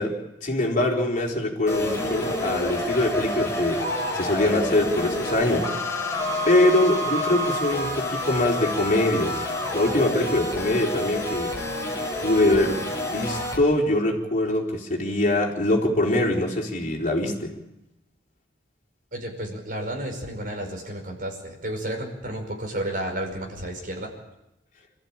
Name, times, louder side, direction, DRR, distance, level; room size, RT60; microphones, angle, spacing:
voice 1, 0.0-3.8 4.1-5.7 6.5-9.4 9.7-11.5 12.2-17.5, left 1 dB, 45° left, -1 dB, 4.1 m, -23 dB
sound 1, 1.7-13.6, left 1 dB, 15° left, 5.5 m, -28 dB
voice 2, 19.1-24.1, right 1 dB, 50° right, 2 dB, 5.4 m, -32 dB
27.5 x 14.5 x 8.8 m, 0.91 s
head